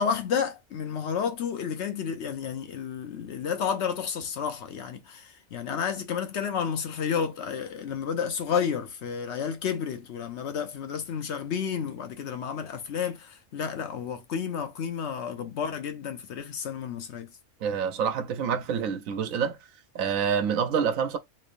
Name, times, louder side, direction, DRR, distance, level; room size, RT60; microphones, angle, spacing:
voice 1, 0.0-17.3, left 7 dB, 65° left, 0.8 m, -31 dB
voice 2, 17.6-19.6 19.9-21.2, right 7 dB, 80° right, 1.0 m, -27 dB
3.2 x 3.0 x 2.5 m
omnidirectional pair, 1.4 m